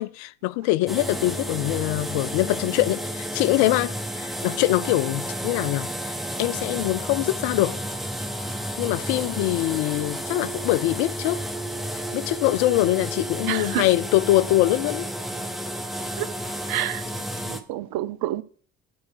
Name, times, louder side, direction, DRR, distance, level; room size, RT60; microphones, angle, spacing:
voice 1, 0.0-6.1 6.4-7.8 8.8-11.4 12.1-15.1, left 18 dB, 70° left, 0.5 m, -23 dB
sound 1, 0.9-17.6, equal, ahead, 1.2 m, -31 dB
voice 2, 13.5-13.9 16.2-16.3 16.7-17.1 17.4-18.4, right 14 dB, 60° right, 0.8 m, -28 dB
9.9 x 4.8 x 6.4 m
hypercardioid pair, 50°, 40 cm